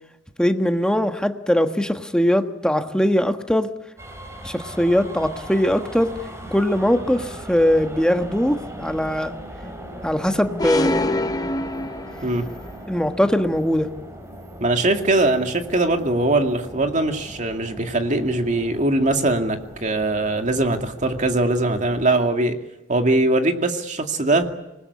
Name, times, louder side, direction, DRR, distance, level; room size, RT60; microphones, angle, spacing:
voice 1, 0.4-3.7 4.4-6.1 6.5-9.3 10.0-11.5 12.9-13.9, equal, 5° left, 7 dB, 1.4 m, -21 dB
sound 1, 4.0-22.1, right 1 dB, 15° right, 4.1 m, -39 dB
sound 2, 10.6-12.6, left 2 dB, 20° left, 0.8 m, -25 dB
voice 2, 14.6-22.6 22.9-24.5, right 2 dB, 40° right, 5 dB, 2.3 m, -21 dB
25.5 x 20.0 x 8.4 m, 0.96 s
head